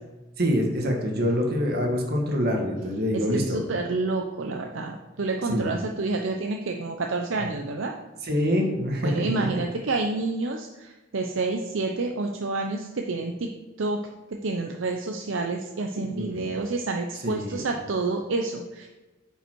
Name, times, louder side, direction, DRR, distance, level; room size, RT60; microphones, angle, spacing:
voice 1, 0.4-3.6 5.5-5.7 8.2-9.5 16.1-16.4 17.2-17.7, equal, 55° right, 1 dB, 1.6 m, -25 dB
voice 2, 3.1-7.9 9.0-13.5 13.8-14.0 14.4-18.9, right 3 dB, 70° right, 3 dB, 0.6 m, -29 dB
9.0 x 5.4 x 4.5 m, 1.2 s
head